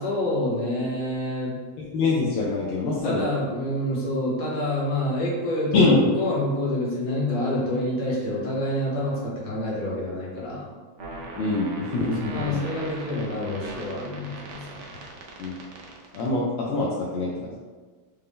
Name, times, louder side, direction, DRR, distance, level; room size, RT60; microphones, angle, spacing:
voice 1, 0.0-1.5 3.0-10.7 12.3-14.8, left 1 dB, 60° left, -5 dB, 1.6 m, -27 dB
voice 2, 1.8-3.3 5.7-6.1 11.4-12.6 15.4-15.6 16.1-17.5, left 3 dB, 80° left, -4 dB, 1.3 m, -24 dB
sound 1, 11.0-16.3, right 3 dB, 80° right, 0.6 m, -39 dB
5.2 x 2.2 x 3.5 m, 1.4 s
omnidirectional pair, 2.2 m